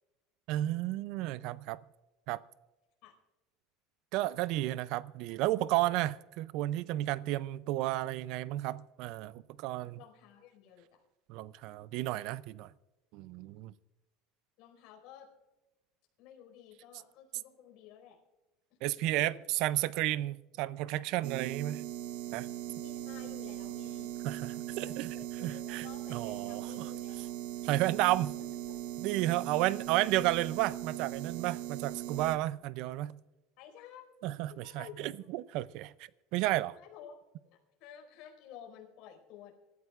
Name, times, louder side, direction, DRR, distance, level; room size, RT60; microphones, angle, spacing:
voice 1, 0.5-1.8 2.3-2.4 4.1-10.0 11.3-12.7 13.1-13.7 18.8-21.8 22.3-22.5 24.2-25.2 25.4-25.9 26.1-26.9 27.6-28.3 29.0-33.2 34.2-35.9 36.3-36.8, right 16 dB, 55° right, 0.4 m, -32 dB
voice 2, 9.8-11.0 14.6-15.3 16.2-18.2 19.1-19.4 22.8-24.1 24.8-27.3 28.7-28.8 29.7-29.8 33.6-34.1 34.5-35.3 36.8-37.2 37.5-39.5, left 9 dB, 55° left, 4.7 m, -53 dB
sound 1, 21.2-32.4, right 12 dB, 85° right, 0.8 m, -40 dB
25.5 x 14.0 x 2.4 m
cardioid pair, 160°, 0 cm